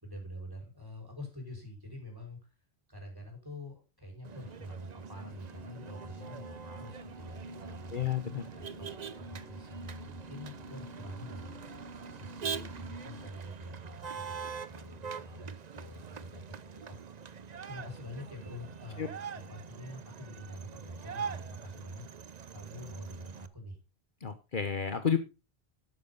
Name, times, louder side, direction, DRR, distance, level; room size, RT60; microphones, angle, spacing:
voice 1, 0.0-2.5 2.9-8.1 8.5-8.9 9.2-11.6 12.0-17.0 17.6-22.1 22.5-23.8, equal, 20° right, 1 dB, 5.3 m, -46 dB
Motor vehicle (road), 4.2-23.5, right 6 dB, 45° right, 0.7 m, -44 dB
sound 1, 4.2-13.3, right 1 dB, 75° right, 2.8 m, -49 dB
voice 2, 7.9-8.4 19.0-19.1 24.2-25.2, left 7 dB, 55° left, 9 dB, 1.2 m, -31 dB
12.5 x 9.0 x 4.0 m, 0.29 s
omnidirectional pair, 1.1 m